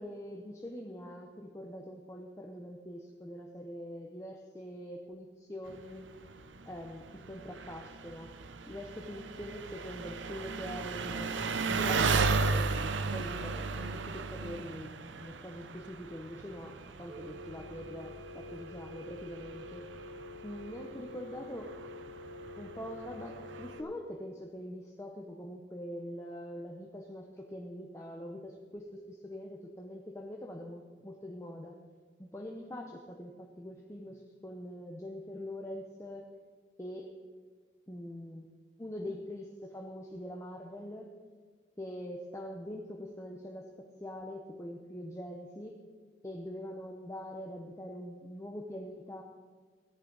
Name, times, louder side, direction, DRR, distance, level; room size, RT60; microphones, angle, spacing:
voice 1, 0.0-6.0 6.7-8.3 8.7-11.4 11.7-19.9 20.4-21.7 22.6-31.8 32.2-36.3 36.8-37.1 37.9-38.4 38.8-41.1 41.8-45.8 46.2-49.2, equal, 15° left, 0 dB, 0.8 m, -43 dB
Engine, 5.7-23.8, right 4 dB, 85° right, 0.7 m, -36 dB
Telephone, 17.1-23.8, left 2 dB, 50° right, 2.2 m, -47 dB
16.5 x 10.5 x 4.0 m, 1.5 s
head